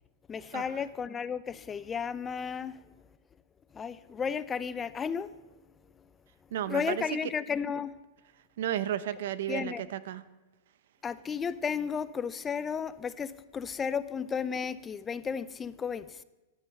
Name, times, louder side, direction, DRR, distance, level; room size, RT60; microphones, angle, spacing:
voice 1, 0.3-2.8 3.7-5.3 6.7-8.0 9.5-9.8 11.0-16.2, left 6 dB, 15° left, 0.5 m, -33 dB
voice 2, 6.5-7.3 8.6-10.2, right 11 dB, 65° right, 0.9 m, -33 dB
15.0 x 10.5 x 6.9 m
supercardioid pair, 150°, 0 cm